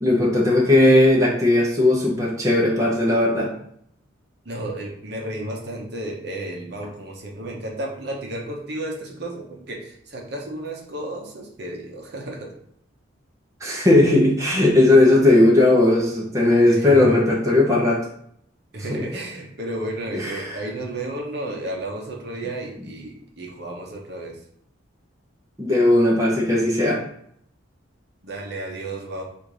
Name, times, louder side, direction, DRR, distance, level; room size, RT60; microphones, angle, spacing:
voice 1, 0.0-3.5 13.6-18.1 18.9-19.0 20.1-20.6 25.6-27.0, left 2 dB, 15° right, -4 dB, 0.8 m, -17 dB
voice 2, 4.4-12.5 16.7-17.2 18.7-24.4 28.2-29.2, right 1 dB, 55° right, -1 dB, 0.8 m, -32 dB
4.1 x 2.6 x 4.8 m, 0.68 s
head